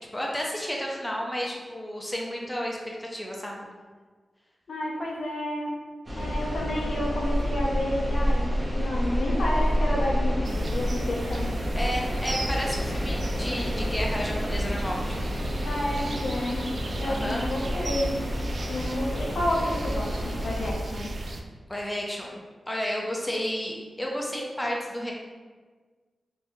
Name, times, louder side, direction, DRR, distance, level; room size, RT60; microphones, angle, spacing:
voice 1, 0.1-3.7 11.7-15.3 17.0-17.5 18.6-18.7 21.7-22.4 22.7-25.1, equal, 10° left, -2 dB, 0.5 m, -32 dB
voice 2, 4.7-5.7 6.1-11.5 15.6-16.7 17.0-18.2 18.7-21.1, left 1 dB, 75° left, -3 dB, 0.7 m, -30 dB
sound 1, 6.1-20.7, equal, 30° right, 0.8 m, -29 dB
sound 2, 10.4-21.4, right 2 dB, 50° right, 0.3 m, -36 dB
3.4 x 2.6 x 3.1 m, 1.4 s
wide cardioid pair, 90°, 0 cm